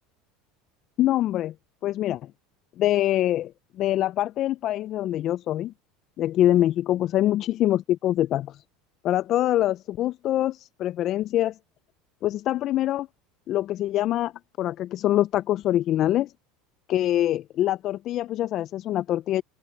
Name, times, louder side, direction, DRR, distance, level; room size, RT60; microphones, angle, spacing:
voice 1, 1.0-1.5 1.8-2.3 2.8-5.7 6.2-8.6 9.0-11.6 12.2-13.1 13.5-14.3 14.6-16.3 16.9-19.4, left 13 dB, 50° left, 0.5 m, -24 dB
open air
hypercardioid pair, 90°, 0 cm